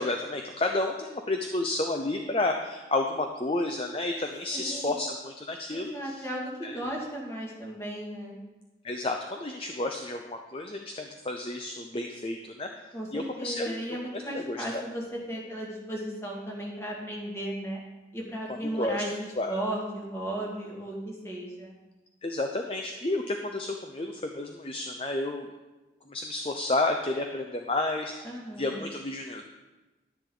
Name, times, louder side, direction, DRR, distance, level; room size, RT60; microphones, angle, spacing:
voice 1, 0.0-6.2 6.6-6.8 8.8-12.7 13.1-13.7 14.1-14.8 18.8-19.0 19.4-19.6 22.2-25.5 26.1-28.3 28.6-29.5, left 2 dB, 30° left, 4 dB, 0.6 m, -31 dB
voice 2, 4.5-5.0 5.7-8.4 12.9-17.8 18.1-21.7 28.2-28.8, right 1 dB, 15° left, -3 dB, 2.1 m, -35 dB
11.0 x 10.0 x 3.8 m, 1.1 s
head